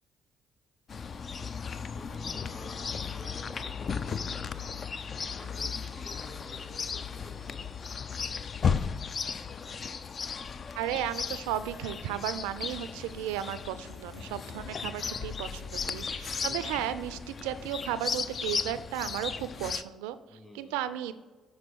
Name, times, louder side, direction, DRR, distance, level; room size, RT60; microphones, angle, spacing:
Chirp tweet, 0.9-19.8, left 6 dB, 45° left, 0.3 m, -35 dB
voice 1, 1.9-4.7 5.3-7.8 16.4-16.7 20.3-20.8, left 1 dB, 25° left, 2 dB, 2.2 m, -49 dB
voice 2, 10.8-20.2 20.5-21.1, right 11 dB, 80° right, 14 dB, 0.3 m, -34 dB
6.2 x 4.2 x 5.9 m, 1.3 s
hypercardioid pair, 50°, 0 cm